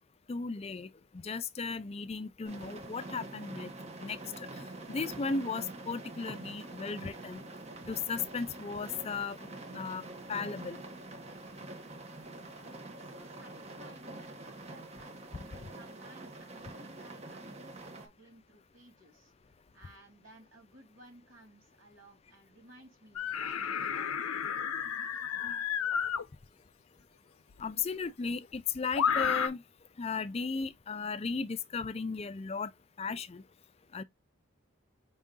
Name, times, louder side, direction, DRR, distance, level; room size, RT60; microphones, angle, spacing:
voice 1, 0.3-3.7 4.0-4.5 4.9-7.4 7.9-10.0 10.3-10.8 15.6-15.7 27.6-29.6 30.0-32.7 33.0-33.4 33.9-34.0, left 4 dB, 30° left, 0.4 m, -36 dB
sound 1, 2.4-18.1, right 2 dB, 30° right, 0.8 m, -46 dB
voice 2, 12.6-15.1 15.7-19.3 19.7-24.7, right 1 dB, 75° right, 2.5 m, -57 dB
sound 2, 23.2-26.2 27.6-27.7 28.9-29.5, left 7 dB, 90° left, 0.5 m, -31 dB
5.4 x 2.6 x 3.6 m
head